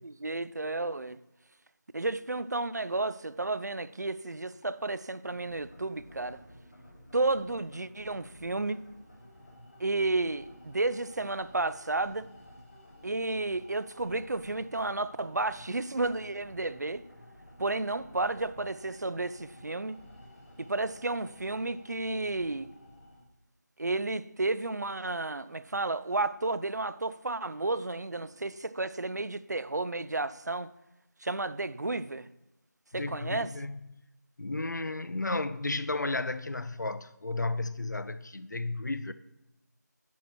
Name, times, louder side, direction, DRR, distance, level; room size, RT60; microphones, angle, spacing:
voice 1, 0.0-1.2 1.9-6.4 7.1-8.8 9.8-12.2 13.0-17.0 17.6-20.0 20.6-22.7 23.8-30.7 31.2-32.3 32.9-33.5, right 2 dB, 65° right, 0.6 m, -32 dB
sound 1, 5.3-23.2, equal, 25° left, 4.2 m, -53 dB
voice 2, 32.9-34.0 34.4-39.1, left 2 dB, 75° left, 0.8 m, -33 dB
10.5 x 4.8 x 6.0 m
figure-of-eight pair, 180°, 10 cm